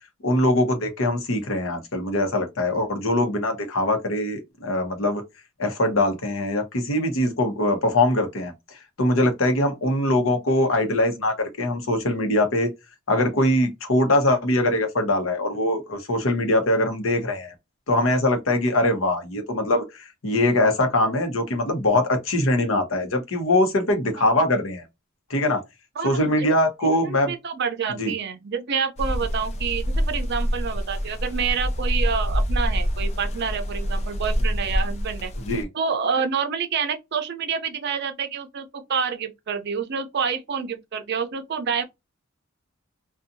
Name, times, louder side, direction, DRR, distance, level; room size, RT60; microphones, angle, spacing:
voice 1, 0.2-5.2 5.6-8.5 9.0-12.7 13.1-17.5 17.9-24.8 25.3-25.6 26.0-27.3 27.9-28.1 35.4-35.7, left 1 dB, 70° left, 0.8 m, -22 dB
voice 2, 26.0-26.5 26.8-35.3 35.7-41.8, right 6 dB, 55° right, 0.5 m, -28 dB
sound 1, 29.0-35.6, equal, 30° left, 0.4 m, -26 dB
2.6 x 2.3 x 2.5 m
head